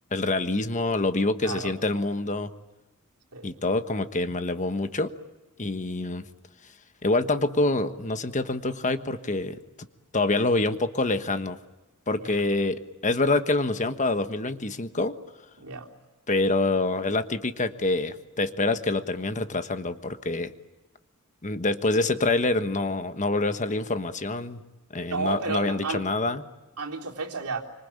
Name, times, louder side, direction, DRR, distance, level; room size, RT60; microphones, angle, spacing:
voice 1, 0.1-2.5 3.4-5.1 5.6-6.3 7.0-9.6 10.1-11.6 12.1-15.1 16.3-20.5 21.4-24.6 24.9-26.4, left 2 dB, 35° left, 9 dB, 1.3 m, -26 dB
voice 2, 1.4-1.7 3.3-3.5 12.2-12.3 15.6-15.9 25.1-26.0 26.8-27.6, right 4 dB, 80° right, 1 dB, 3.6 m, -32 dB
26.0 x 25.5 x 8.9 m, 1.1 s
head